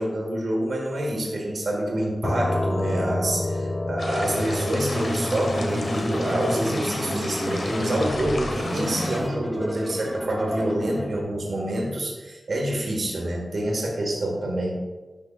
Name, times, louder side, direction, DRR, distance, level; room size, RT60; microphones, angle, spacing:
voice 1, 0.0-14.8, right 1 dB, 70° right, -2 dB, 1.6 m, -27 dB
sound 1, 2.2-11.7, left 2 dB, 40° left, 0.6 m, -31 dB
sound 2, 4.0-9.2, left 2 dB, 70° left, 1.2 m, -35 dB
sound 3, 4.9-11.2, equal, ahead, 1.5 m, -32 dB
11.0 x 6.2 x 2.4 m, 1.2 s
wide cardioid pair, 100°, 0 cm